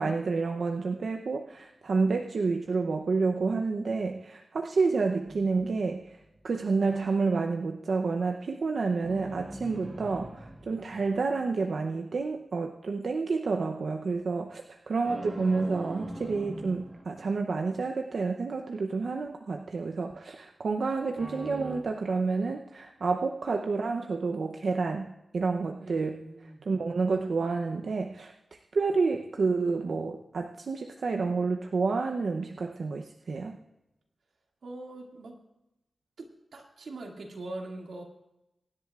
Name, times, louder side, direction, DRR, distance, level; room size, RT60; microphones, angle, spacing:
voice 1, 0.0-6.2 6.4-26.2 26.7-28.3 28.7-33.6, right 4 dB, 60° right, 3 dB, 0.6 m, -29 dB
sound 1, 5.2-6.4 9.0-11.7 15.0-17.8 21.2-21.8, right 1 dB, 15° right, 1.4 m, -43 dB
voice 2, 25.8-26.7 34.6-35.4 36.2-38.0, right 2 dB, 85° right, 0 dB, 2.2 m, -42 dB
23.5 x 10.5 x 2.4 m, 0.92 s
wide cardioid pair, 165°, 0 cm